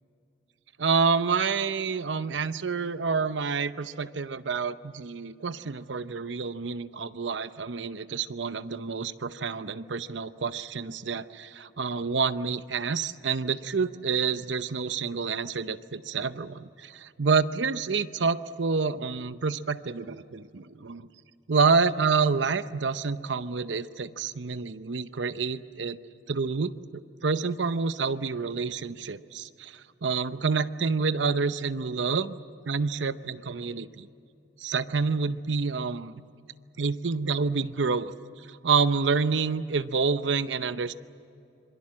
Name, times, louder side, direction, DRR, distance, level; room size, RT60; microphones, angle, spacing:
voice 1, 0.8-21.0 21.5-26.0 26.3-32.3 32.7-34.1 34.6-36.1 36.8-38.1 38.5-40.9, right 5 dB, 90° right, 13 dB, 0.7 m, -28 dB
26.5 x 23.0 x 7.6 m, 2.6 s
head